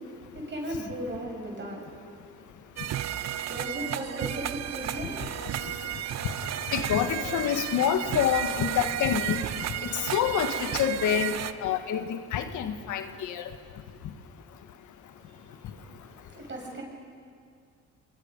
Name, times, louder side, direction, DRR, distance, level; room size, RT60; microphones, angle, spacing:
voice 1, 0.0-5.6 15.2-16.8, right 1 dB, 40° right, -1 dB, 7.0 m, -38 dB
sound 1, 2.8-11.5, right 11 dB, 60° right, 0.7 m, -33 dB
Stream, 4.4-12.0, left 3 dB, 35° left, 3.1 m, -47 dB
voice 2, 6.7-9.4 9.8-11.4 11.6-13.4, left 9 dB, 80° left, 8 dB, 1.5 m, -27 dB
26.0 x 21.0 x 5.3 m, 2.2 s
cardioid pair, 90°, 30 cm